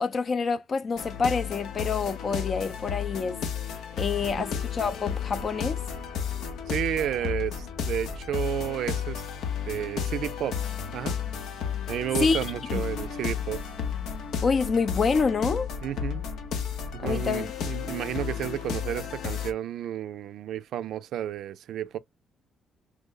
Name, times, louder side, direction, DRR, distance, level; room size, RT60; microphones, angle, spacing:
voice 1, 0.0-3.4 4.0-5.8 12.2-12.4 12.7-12.8 14.4-15.7 17.0-17.5, left 5 dB, 45° left, 0.5 m, -27 dB
sound 1, 1.0-19.5, left 7 dB, 80° left, 0.8 m, -33 dB
voice 2, 6.7-9.2 9.7-10.6 10.9-11.1 11.9-13.6 15.8-16.2 16.9-22.0, right 10 dB, 75° right, 0.4 m, -31 dB
3.0 x 2.1 x 3.9 m
cardioid pair, 90°, 0 cm